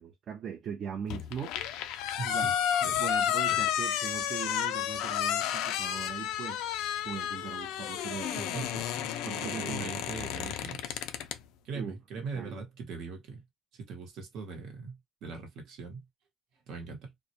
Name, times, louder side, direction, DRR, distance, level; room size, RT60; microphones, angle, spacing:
voice 1, 0.0-1.6 2.2-2.5 3.0-6.6 7.0-8.6 9.2-10.0 10.4-10.5 11.7-12.0 12.3-12.6, right 8 dB, 45° right, 0.4 m, -40 dB
sound 1, 1.1-11.4, left 10 dB, 85° left, 0.3 m, -31 dB
voice 2, 2.2-2.5 2.8-3.0 3.5-3.6 8.4-11.0 11.6-13.4 13.7-16.0 16.7-17.1, right 4 dB, 70° right, 0.9 m, -41 dB
2.2 x 2.1 x 2.7 m
cardioid pair, 145°, 0 cm